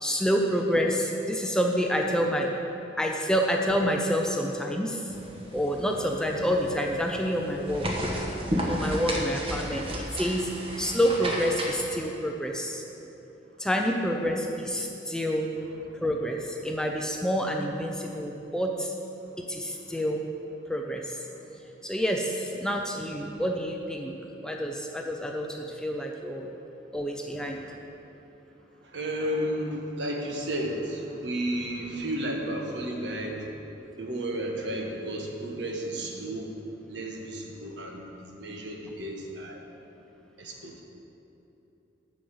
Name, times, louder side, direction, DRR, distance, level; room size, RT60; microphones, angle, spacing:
voice 1, 0.0-2.5 3.0-5.0 5.5-7.9 8.7-9.9 10.1-10.5 10.8-12.8 13.6-15.5 16.0-18.9 19.4-20.2 20.7-21.2 21.8-24.1 24.4-26.5 26.9-27.6, equal, 5° left, 1 dB, 0.5 m, -28 dB
sound 1, 5.1-11.8, equal, 30° right, 1.2 m, -33 dB
voice 2, 15.6-16.0 23.3-23.4 26.5-26.6 27.3-27.7 28.5-28.6 28.8-33.6 34.0-36.5 36.9-39.6 40.4-40.8, right 1 dB, 70° right, 1 dB, 1.3 m, -33 dB
8.2 x 6.3 x 7.9 m, 2.9 s
head